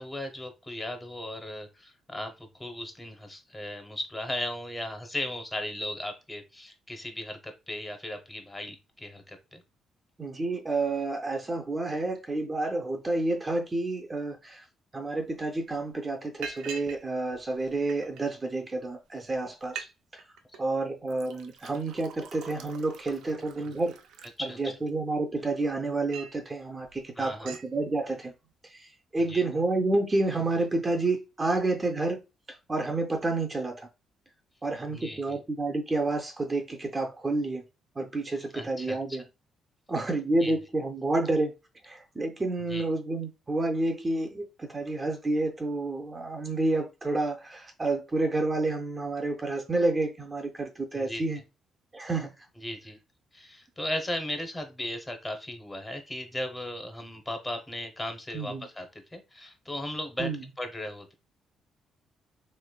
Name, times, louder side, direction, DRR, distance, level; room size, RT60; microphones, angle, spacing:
voice 1, 0.0-9.6 24.4-24.6 27.2-27.6 29.2-29.4 34.9-35.4 38.5-39.2 40.4-40.6 42.7-42.9 50.9-51.2 52.6-53.0 53.3-58.9 59.1-60.3 60.6-61.1, left 1 dB, 15° left, 0.8 m, -36 dB
voice 2, 10.2-14.6 14.9-19.9 20.6-23.9 24.4-28.3 28.7-28.9 29.1-32.2 32.7-33.9 34.6-37.6 38.0-39.2 39.9-41.5 41.8-51.4 51.9-52.3 58.3-58.7 60.2-60.4, right 2 dB, 25° right, 0.5 m, -29 dB
Liquid, 15.3-15.4 15.7-15.9 16.4-17.0 17.3-18.2 18.9-19.0 19.3-19.4 19.6-19.9 20.2-20.6 21.1-24.9 25.4-26.4 26.8-27.0 27.2-27.7, right 6 dB, 85° right, 0.4 m, -44 dB
3.1 x 2.9 x 2.2 m
cardioid pair, 90°, 0 cm